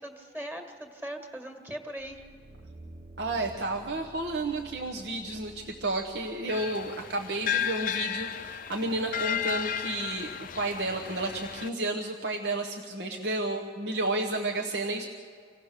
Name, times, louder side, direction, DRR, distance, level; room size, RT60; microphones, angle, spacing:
voice 1, 0.0-2.2, right 1 dB, 10° right, 4 dB, 1.7 m, -40 dB
sound 1, 2.0-6.4 6.9-7.0, right 2 dB, 40° right, 0.9 m, -50 dB
voice 2, 3.2-15.0, right 2 dB, 75° right, 1 dB, 1.1 m, -31 dB
sound 2, 6.5-11.7, left 8 dB, 45° left, 0.4 m, -33 dB
26.0 x 17.0 x 6.6 m, 2.3 s
head